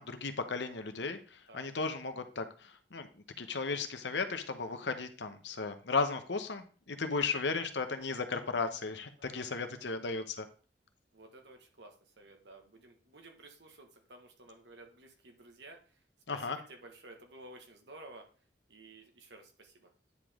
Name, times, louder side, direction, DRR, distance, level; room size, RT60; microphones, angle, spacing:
voice 1, 0.0-3.1 3.4-10.5 16.3-16.6, left 4 dB, 90° left, 8 dB, 1.0 m, -35 dB
voice 2, 9.2-10.0 11.1-16.0 16.3-18.3 18.7-19.9, right 2 dB, 85° right, 3 dB, 1.6 m, -54 dB
9.7 x 5.1 x 3.7 m, 0.39 s
head